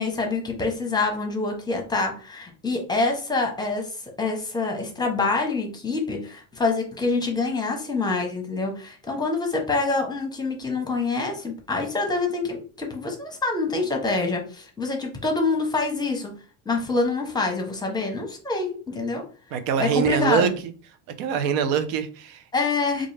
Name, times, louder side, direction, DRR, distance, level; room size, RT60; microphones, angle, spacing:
voice 1, 0.0-3.9 4.2-16.3 16.7-19.2 19.8-20.5 22.5-23.1, left 3 dB, 10° left, 2 dB, 0.7 m, -26 dB
voice 2, 19.5-20.7 21.2-22.4, right 7 dB, 85° right, 10 dB, 0.7 m, -24 dB
3.7 x 2.5 x 3.2 m, 0.40 s
cardioid pair, 130°, 41 cm